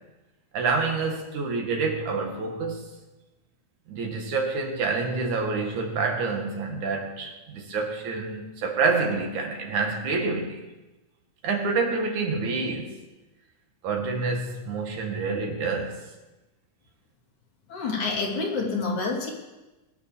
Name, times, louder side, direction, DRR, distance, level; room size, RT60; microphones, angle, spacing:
voice 1, 0.5-2.9 3.9-10.7 11.4-12.9 13.8-16.0, right 4 dB, 75° right, 2 dB, 3.5 m, -27 dB
voice 2, 17.7-19.3, left 4 dB, 75° left, -2 dB, 4.7 m, -28 dB
21.5 x 8.4 x 7.0 m, 1.1 s
omnidirectional pair, 3.4 m